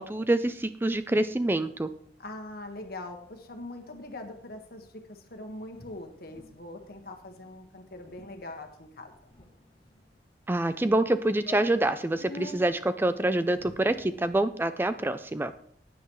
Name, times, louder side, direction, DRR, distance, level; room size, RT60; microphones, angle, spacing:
voice 1, 0.0-1.9 10.5-15.5, right 1 dB, 10° right, 11 dB, 0.4 m, -26 dB
voice 2, 2.2-9.1, left 2 dB, 60° left, 5 dB, 1.5 m, -42 dB
sound 1, 5.7-6.6 6.8-7.0 7.3-7.5 7.8-7.9 8.1-8.3 8.9-10.0 10.7-10.8 11.1-11.2 11.4-12.6 13.4-14.5, left 3 dB, 30° left, 1.0 m, -47 dB
15.5 x 9.4 x 3.1 m, 0.64 s
head